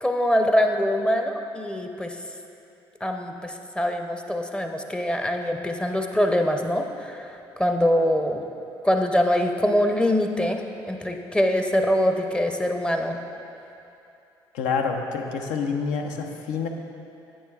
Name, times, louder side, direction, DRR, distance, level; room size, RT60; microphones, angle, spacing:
voice 1, 0.0-2.2 3.0-7.3 7.6-8.4 8.8-10.6 10.9-13.2, equal, 5° left, 4 dB, 0.6 m, -23 dB
voice 2, 14.5-16.7, left 5 dB, 65° left, 3 dB, 0.7 m, -27 dB
10.0 x 8.8 x 2.3 m, 2.7 s
hypercardioid pair, 50°, 13 cm